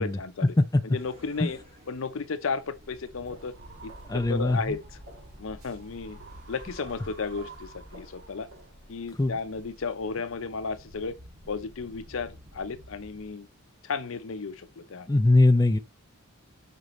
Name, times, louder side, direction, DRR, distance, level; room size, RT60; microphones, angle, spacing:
voice 1, 0.0-0.5 0.8-1.6 1.9-3.5 3.8-4.8 5.4-6.2 6.5-8.5 8.9-11.2 11.5-13.5 13.8-15.1, left 4 dB, 65° left, 0.6 m, -34 dB
sound 1, 0.9-13.3, equal, 25° right, 2.1 m, -53 dB
sound 2, 3.1-10.1, equal, 80° right, 3.1 m, -53 dB
sound 3, 3.4-8.7, right 2 dB, 50° right, 2.3 m, -48 dB
voice 2, 4.1-4.8 9.2-9.4 15.1-15.8, left 2 dB, 15° left, 0.3 m, -21 dB
7.9 x 5.2 x 3.1 m
head